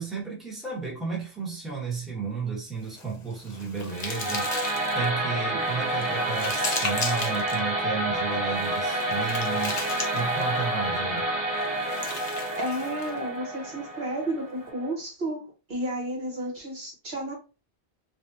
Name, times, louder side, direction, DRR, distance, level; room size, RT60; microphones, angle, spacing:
voice 1, 0.0-4.5 4.9-9.8 10.1-11.3, right 5 dB, ahead, 1.1 m, -33 dB
sound 1, 2.8-5.1 5.6-7.6 8.5-10.6 11.6-13.2, left 3 dB, 45° left, 0.8 m, -36 dB
sound 2, 3.9-14.9, right 1 dB, 35° right, 0.9 m, -29 dB
voice 2, 12.6-17.4, right 1 dB, 65° right, 1.3 m, -32 dB
3.3 x 2.7 x 2.7 m
omnidirectional pair, 1.1 m